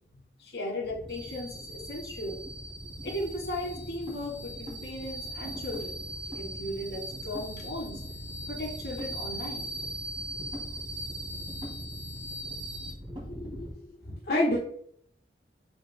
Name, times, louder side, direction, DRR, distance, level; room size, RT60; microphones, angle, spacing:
voice 1, 0.4-2.4 3.0-8.0 8.5-9.8, left 1 dB, 85° left, -1 dB, 2.8 m, -37 dB
sound 1, 0.8-13.7, right 1 dB, 30° right, 2.8 m, -39 dB
voice 2, 13.3-13.8 14.1-14.6, left 1 dB, 65° left, -5 dB, 1.4 m, -28 dB
7.2 x 6.3 x 2.3 m, 0.63 s
head